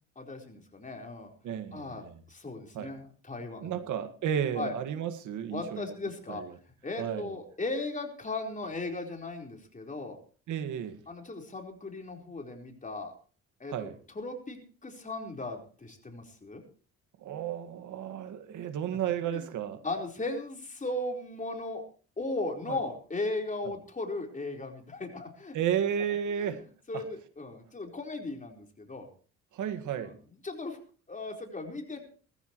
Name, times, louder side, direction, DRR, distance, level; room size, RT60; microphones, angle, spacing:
voice 1, 0.2-1.3 1.7-3.8 4.6-4.7 5.5-6.4 6.8-10.2 11.1-13.1 13.6-16.6 19.2-19.5 19.8-21.8 22.2-25.6 26.0-26.1 26.4-26.6 26.9-29.1 30.0-30.1 30.4-30.8 31.1-32.0, left 2 dB, 25° left, 2 dB, 4.3 m, -37 dB
voice 2, 1.4-2.2 2.7-2.9 3.6-5.9 6.3-6.5 7.0-7.3 10.5-11.0 13.7-14.0 17.2-19.8 22.7-22.8 23.7-23.8 25.5-26.6 26.9-27.0 29.5-30.1, right 9 dB, 80° right, 9 dB, 1.9 m, -33 dB
19.5 x 15.0 x 3.1 m, 0.40 s
cardioid pair, 90°, 30 cm